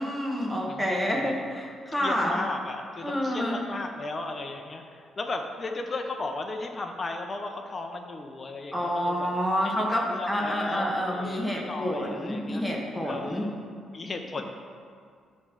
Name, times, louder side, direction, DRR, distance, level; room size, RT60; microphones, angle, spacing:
voice 1, 0.0-2.4 3.0-3.6 8.7-13.5, equal, ahead, -3 dB, 1.3 m, -28 dB
voice 2, 0.7-1.4 2.0-9.3 9.6-12.6 13.0-13.6 13.9-14.4, left 3 dB, 35° left, 4 dB, 0.6 m, -36 dB
9.4 x 3.2 x 6.6 m, 2.2 s
cardioid pair, 90°, 0 cm